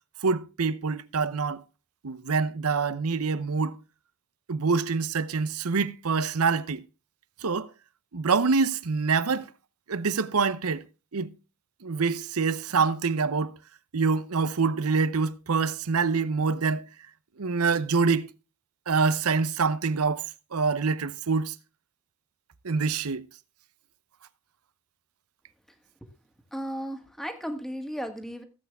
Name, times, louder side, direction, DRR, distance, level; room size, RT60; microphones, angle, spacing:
voice 1, 0.2-1.6 2.0-3.8 4.5-6.8 7.4-7.7 8.1-9.5 9.9-10.8 11.1-11.3 11.8-13.6 13.9-16.8 17.4-18.3 18.9-20.2 20.5-21.6 22.6-23.3, right 4 dB, 80° right, 0.8 m, -25 dB
voice 2, 26.5-28.4, equal, ahead, 1.9 m, -35 dB
16.0 x 8.4 x 3.5 m
head